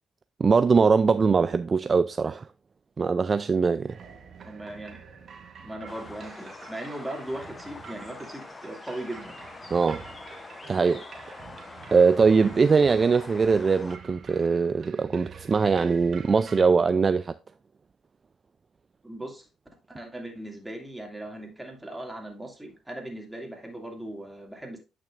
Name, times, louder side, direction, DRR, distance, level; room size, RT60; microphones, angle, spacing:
voice 1, 0.4-2.4 3.0-4.0 9.7-10.0 10.7-11.0 11.9-17.3, right 5 dB, 35° right, 0.3 m, -21 dB
sound 1, 3.9-16.7, right 6 dB, 55° right, 1.1 m, -47 dB
voice 2, 4.4-5.0 5.6-9.4 19.0-19.5 19.9-24.8, right 1 dB, 10° right, 2.3 m, -38 dB
sound 2, 5.9-14.0, left 3 dB, 30° left, 0.7 m, -45 dB
9.0 x 6.0 x 2.5 m
cardioid pair, 90°, 0 cm